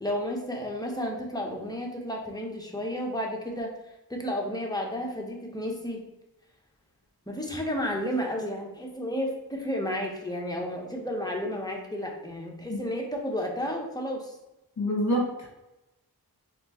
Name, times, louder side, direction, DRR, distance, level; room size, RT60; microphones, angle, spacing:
voice 1, 0.0-3.7 4.1-6.0 7.3-14.4, equal, 10° left, 0 dB, 0.9 m, -32 dB
voice 2, 14.8-15.5, equal, 45° left, -5 dB, 1.4 m, -26 dB
4.3 x 3.4 x 2.9 m, 0.97 s
wide cardioid pair, 70°, 39 cm